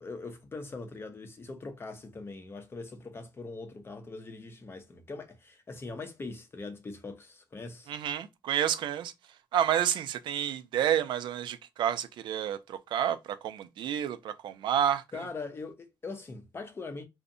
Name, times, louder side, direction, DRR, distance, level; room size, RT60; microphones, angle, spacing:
voice 1, 0.0-7.9 15.1-17.1, left 3 dB, 30° left, 0.6 m, -41 dB
voice 2, 7.9-9.1 9.5-15.0, right 10 dB, 85° right, 0.3 m, -29 dB
2.6 x 2.1 x 2.5 m
cardioid pair, 115°, 8 cm